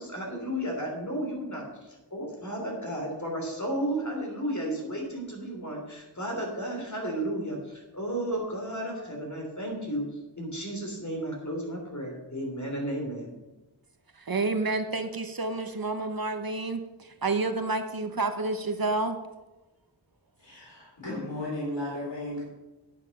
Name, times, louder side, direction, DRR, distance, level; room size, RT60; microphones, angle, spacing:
voice 1, 0.0-13.4, right 1 dB, 45° left, 3.3 m, -33 dB
voice 2, 14.2-19.2, right 3 dB, 55° right, 0.9 m, -29 dB
voice 3, 20.4-22.4, left 1 dB, 85° left, 4.0 m, -35 dB
9.8 x 9.2 x 5.3 m
wide cardioid pair, 55°, 42 cm